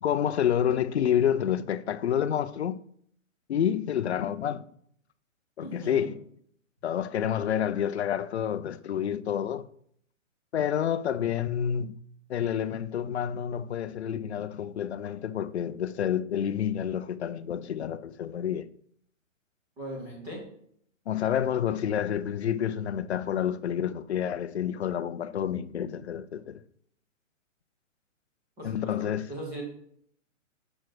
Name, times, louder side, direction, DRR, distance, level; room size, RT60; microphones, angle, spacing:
voice 1, 0.0-2.8 3.5-4.7 5.6-6.2 6.8-9.7 10.5-11.9 12.3-18.7 21.1-26.6 28.6-29.3, left 9 dB, 55° left, 0.5 m, -29 dB
voice 2, 5.6-6.1 19.8-20.4 28.6-29.6, right 1 dB, 5° right, 0.9 m, -39 dB
6.3 x 4.7 x 6.0 m
hypercardioid pair, 175°, 39 cm